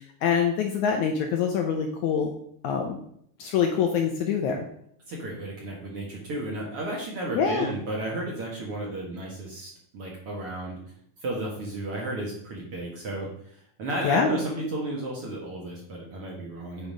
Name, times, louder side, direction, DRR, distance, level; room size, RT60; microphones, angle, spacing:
voice 1, 0.2-2.3 2.6-3.0 3.4-4.7 7.4-7.7 14.0-14.3, left 7 dB, 75° left, 2 dB, 1.8 m, -25 dB
voice 2, 5.1-10.8 11.2-16.9, right 1 dB, 55° right, -2 dB, 1.8 m, -33 dB
9.0 x 4.0 x 5.0 m, 0.68 s
omnidirectional pair, 4.1 m